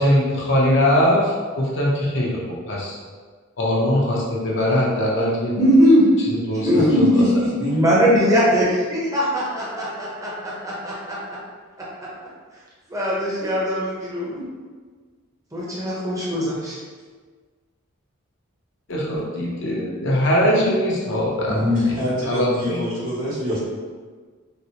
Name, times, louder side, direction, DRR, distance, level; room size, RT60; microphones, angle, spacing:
voice 1, 0.0-3.0 3.6-5.6 6.3-7.2 18.9-21.6 21.9-22.0 22.2-22.9, left 1 dB, 60° left, -4 dB, 0.7 m, -21 dB
voice 2, 5.6-6.1 6.6-7.2 7.6-11.4 11.8-11.9 12.9-14.5 15.5-16.8, equal, 15° right, -6 dB, 0.7 m, -20 dB
voice 3, 6.8-7.7 21.5-23.6, left 1 dB, 75° right, -8 dB, 1.3 m, -23 dB
4.0 x 2.1 x 2.8 m, 1.5 s
head